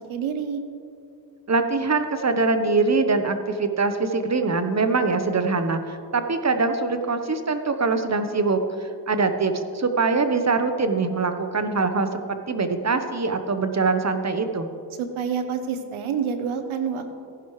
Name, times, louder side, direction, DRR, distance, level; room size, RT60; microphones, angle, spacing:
voice 1, 0.1-0.6 15.0-17.1, right 6 dB, 80° right, 8 dB, 1.1 m, -27 dB
voice 2, 1.5-14.7, right 4 dB, 35° right, 8 dB, 1.1 m, -23 dB
15.0 x 10.5 x 3.3 m, 2.4 s
supercardioid pair, 50°, 48 cm